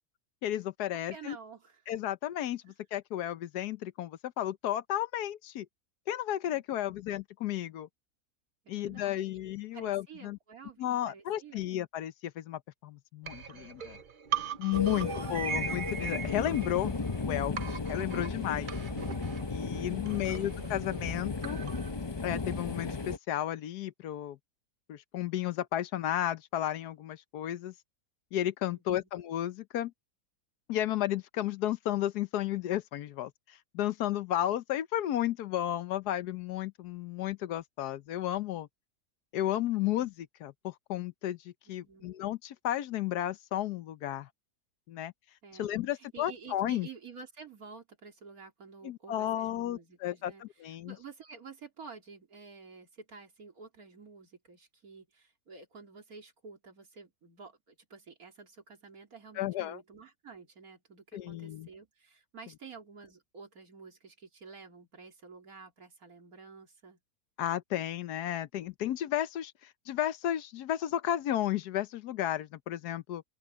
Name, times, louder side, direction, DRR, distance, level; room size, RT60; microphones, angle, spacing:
voice 1, 0.4-1.4 1.9-5.7 6.1-7.9 8.7-10.4 10.8-14.0 14.6-16.9 17.2-18.7 19.5-21.6 22.2-24.4 24.9-27.7 28.3-29.9 30.7-38.7 39.3-44.3 44.9-45.1 45.6-46.9 48.8-51.0 59.4-59.8 61.1-61.7 67.4-73.2, left 12 dB, 85° left, 1.3 m, -33 dB
voice 2, 1.1-1.8 6.5-7.0 8.6-9.3 9.7-11.7 14.8-15.2 19.7-20.4 28.7-29.1 41.8-42.1 45.4-45.7 46.0-67.0, right 5 dB, 65° right, 3.3 m, -51 dB
sound 1, 13.2-17.2 17.6-22.0, right 7 dB, 45° right, 0.6 m, -39 dB
sound 2, 14.7-23.2, left 4 dB, 30° left, 0.5 m, -35 dB
open air
omnidirectional pair, 1.7 m